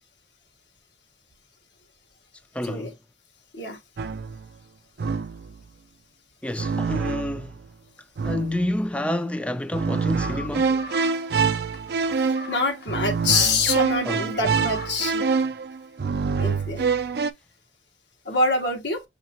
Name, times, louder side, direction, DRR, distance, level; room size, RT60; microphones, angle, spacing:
voice 1, 2.5-2.9 6.4-7.6 8.2-10.8 14.1-14.4, left 1 dB, 5° left, 0.3 m, -29 dB
sound 1, 4.0-4.5 5.0-5.5 6.6-7.6 8.2-8.7 9.7-17.3, right 5 dB, 60° right, 0.4 m, -26 dB
sound 2, 10.2-15.2, left 3 dB, 60° left, 0.8 m, -41 dB
voice 2, 12.3-15.3 16.4-16.9 18.2-19.0, left 3 dB, 80° left, 1.3 m, -25 dB
5.9 x 2.9 x 2.8 m
head